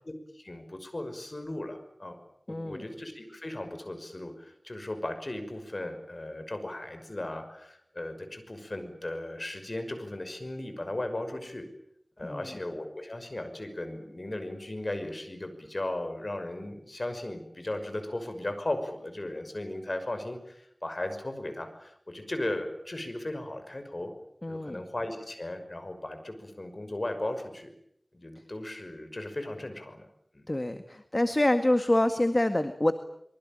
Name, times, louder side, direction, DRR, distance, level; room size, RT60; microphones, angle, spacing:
voice 1, 0.0-2.2 2.5-11.7 12.2-24.1 24.5-27.7 28.1-30.1 30.3-30.5, left 1 dB, 50° left, 8 dB, 5.8 m, -36 dB
voice 2, 2.5-2.8 12.2-12.5 24.4-24.8 30.5-32.9, left 1 dB, 35° left, 8 dB, 1.9 m, -26 dB
25.0 x 24.0 x 9.0 m, 0.73 s
wide cardioid pair, 55°, 0 cm